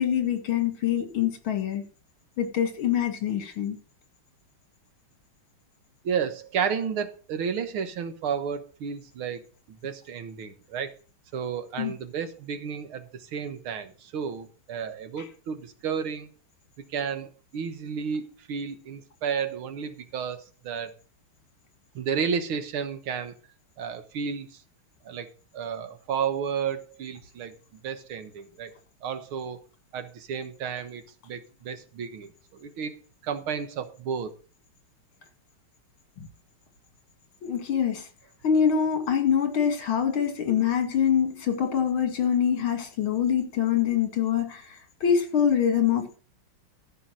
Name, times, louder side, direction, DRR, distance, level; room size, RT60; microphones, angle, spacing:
voice 1, 0.0-1.8 2.4-3.8 11.8-11.9 15.2-15.3 36.2-36.3 37.4-38.1 38.4-46.2, left 8 dB, 70° left, 7 dB, 2.9 m, -25 dB
voice 2, 6.0-10.9 11.3-16.3 16.9-20.9 22.0-23.3 23.8-24.6 25.0-25.3 25.5-27.5 27.8-28.7 29.0-29.6 29.9-33.0 33.2-34.4, right 7 dB, 75° right, 10 dB, 2.0 m, -32 dB
15.0 x 5.5 x 6.2 m, 0.37 s
omnidirectional pair, 2.4 m